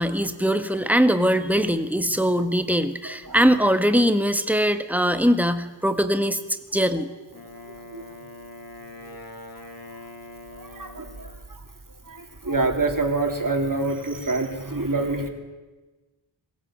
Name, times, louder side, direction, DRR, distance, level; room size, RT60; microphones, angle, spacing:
voice 1, 0.0-6.4 6.7-7.1, equal, 5° right, 9 dB, 1.6 m, -21 dB
Wind instrument woodwind instrument, 7.3-11.5, left 1 dB, 50° left, 2.6 m, -43 dB
voice 2, 7.6-8.1 10.5-11.6 12.1-15.3, right 3 dB, 45° right, 4 dB, 3.1 m, -27 dB
22.0 x 16.5 x 8.8 m, 1.2 s
wide cardioid pair, 55°, 45 cm